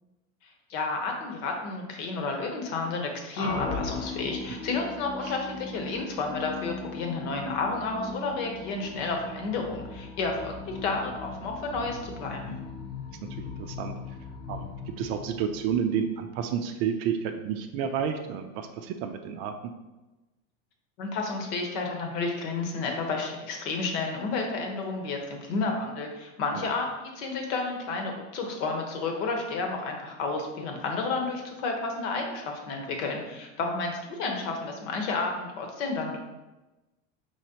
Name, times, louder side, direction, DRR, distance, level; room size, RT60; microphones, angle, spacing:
voice 1, 0.4-12.6 21.0-36.2, left 3 dB, 65° left, 2 dB, 1.1 m, -31 dB
sound 1, 3.4-16.2, left 4 dB, 40° left, 0.8 m, -38 dB
voice 2, 13.3-13.9 14.5-19.7 26.5-26.7, right 7 dB, 55° right, 6 dB, 0.5 m, -31 dB
5.1 x 3.1 x 2.8 m, 1.1 s
supercardioid pair, 120°, 40 cm